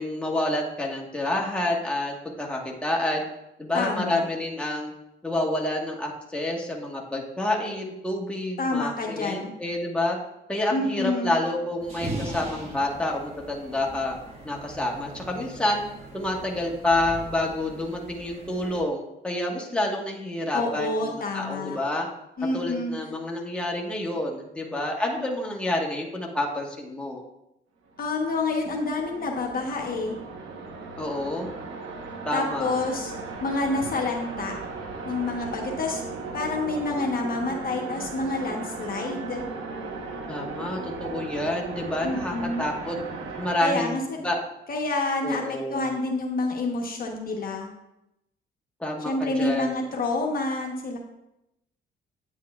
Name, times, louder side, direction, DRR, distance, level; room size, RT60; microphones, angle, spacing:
voice 1, 0.0-3.2 3.6-4.9 5.2-10.2 10.5-14.2 14.4-15.8 16.1-22.1 22.5-27.2 31.0-31.5 32.2-32.8 40.3-43.0 43.4-44.0 44.2-44.4 45.2-45.9 48.8-49.7, left 1 dB, 5° left, -1 dB, 1.4 m, -28 dB
voice 2, 3.7-4.2 8.6-9.5 10.7-11.4 20.5-21.8 22.4-22.9 28.0-30.2 32.3-33.1 33.4-34.6 35.1-36.0 36.3-39.4 42.0-42.6 43.6-44.2 44.7-47.7 49.0-51.0, left 2 dB, 45° left, 1 dB, 1.1 m, -28 dB
sound 1, 11.8-18.8, right 1 dB, 30° right, 1.7 m, -40 dB
sound 2, 27.9-43.5, right 4 dB, 85° right, 1.2 m, -37 dB
9.1 x 7.5 x 2.4 m, 0.87 s
cardioid pair, 90°, 20 cm